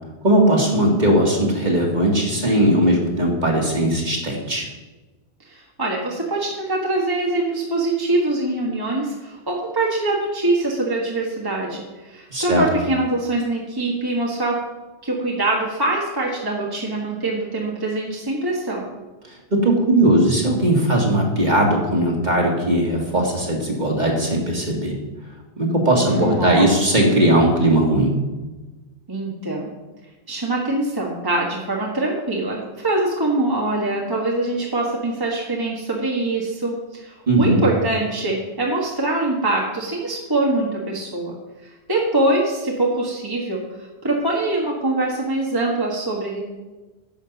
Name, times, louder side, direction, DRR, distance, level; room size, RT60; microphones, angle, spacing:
voice 1, 0.2-4.7 12.3-12.6 19.5-24.9 25.6-28.1 37.3-37.6, right 1 dB, 40° right, -1 dB, 2.3 m, -18 dB
voice 2, 5.5-14.6 15.0-18.9 26.0-26.7 29.1-29.7 30.3-41.4 41.6-43.6 44.0-46.4, right 2 dB, 20° right, -2 dB, 1.4 m, -23 dB
10.5 x 5.9 x 7.1 m, 1.2 s
omnidirectional pair, 1.1 m